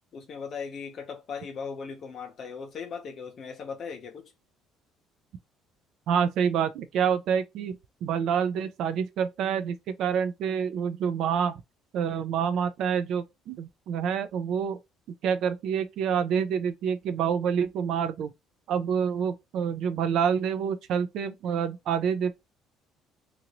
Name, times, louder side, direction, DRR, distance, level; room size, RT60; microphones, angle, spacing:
voice 1, 0.1-4.3, left 5 dB, 35° left, 0.8 m, -38 dB
voice 2, 6.1-11.6 11.9-14.8 15.2-18.3 18.7-22.3, right 7 dB, 55° right, 0.4 m, -27 dB
2.8 x 2.5 x 2.9 m
cardioid pair, 170°, 0 cm